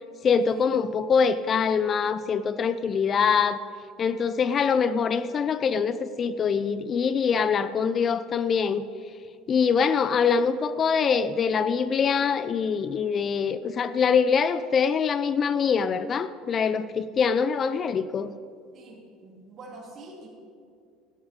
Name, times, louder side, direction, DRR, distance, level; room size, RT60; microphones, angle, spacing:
voice 1, 0.2-3.6 4.0-8.8 9.5-18.3, left 6 dB, 40° left, 14 dB, 0.5 m, -24 dB
voice 2, 18.7-20.3, right 2 dB, 45° right, 0 dB, 3.4 m, -45 dB
13.0 x 12.5 x 5.2 m, 2.4 s
hypercardioid pair, 70°, 0 cm